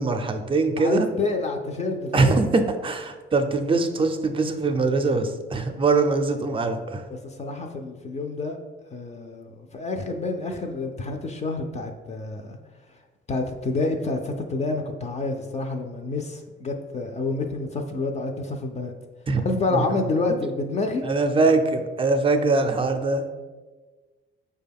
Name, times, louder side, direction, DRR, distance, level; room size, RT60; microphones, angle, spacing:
voice 1, 0.0-1.1 2.1-7.0 19.3-19.4 19.7-20.0 20.3-20.4 21.0-23.3, right 3 dB, 25° right, 7 dB, 0.4 m, -22 dB
voice 2, 0.8-2.4 5.9-6.0 7.1-8.6 8.9-12.6 12.9-13.0 13.3-18.9 19.4-21.0, left 3 dB, 35° left, 4 dB, 0.4 m, -28 dB
5.1 x 2.2 x 3.4 m, 1.3 s
cardioid pair, 90°, 20 cm